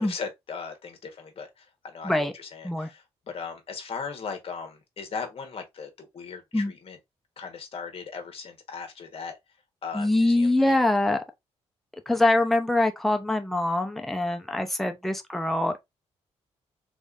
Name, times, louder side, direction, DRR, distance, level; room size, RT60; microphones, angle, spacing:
voice 1, 0.0-7.0 7.4-9.4 9.8-10.8, left 5 dB, 55° left, 1.3 m, -38 dB
voice 2, 9.9-11.2 12.1-15.8, left 2 dB, ahead, 0.6 m, -24 dB
3.4 x 3.3 x 2.5 m
cardioid pair, 100°, 12 cm